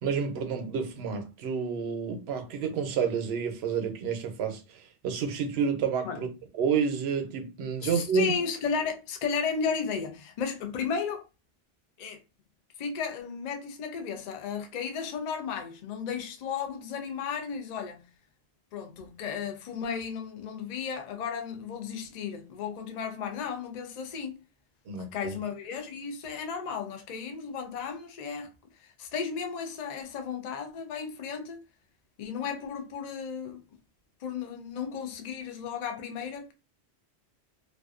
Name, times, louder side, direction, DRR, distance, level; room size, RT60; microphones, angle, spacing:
voice 1, 0.0-6.3 6.6-8.3 24.9-25.3, right 6 dB, 70° right, 0.8 m, -29 dB
voice 2, 7.8-11.2 12.0-12.2 12.8-18.0 18.7-24.4 24.9-28.5 28.8-31.6 32.2-33.6 34.2-36.5, left 6 dB, 55° left, 0.5 m, -34 dB
2.5 x 2.2 x 2.4 m
omnidirectional pair, 1.1 m